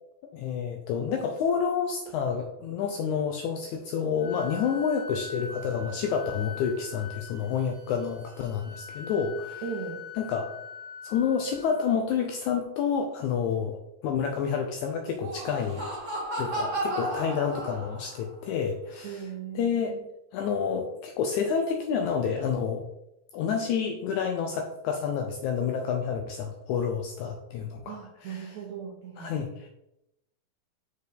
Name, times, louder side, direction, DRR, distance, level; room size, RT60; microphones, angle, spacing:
voice 1, 0.3-9.6 10.2-10.5 11.0-15.8 16.4-19.3 19.5-20.0 20.3-22.8 23.3-28.6 29.2-29.7, left 6 dB, 85° left, 4 dB, 1.7 m, -29 dB
Wind instrument woodwind instrument, 4.2-12.0, left 5 dB, 65° left, 1.7 m, -43 dB
voice 2, 9.6-10.1 19.0-20.1 27.9-29.3, right 6 dB, 75° right, -1 dB, 1.7 m, -38 dB
Laughter, 15.0-18.2, right 1 dB, 45° right, 0.9 m, -33 dB
6.4 x 4.4 x 3.4 m, 0.86 s
omnidirectional pair, 3.9 m